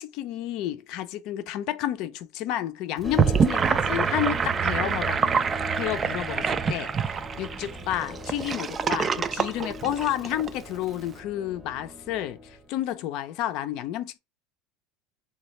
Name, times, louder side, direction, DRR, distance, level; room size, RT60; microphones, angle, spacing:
voice 1, 0.0-5.3 5.7-14.2, left 12 dB, 60° left, 0.5 m, -31 dB
sound 1, 3.0-12.8, left 1 dB, 10° right, 0.7 m, -39 dB
Gurgling / Sink (filling or washing), 3.0-10.5, right 6 dB, 30° right, 0.3 m, -26 dB
3.2 x 2.3 x 3.0 m
supercardioid pair, 105°, 0 cm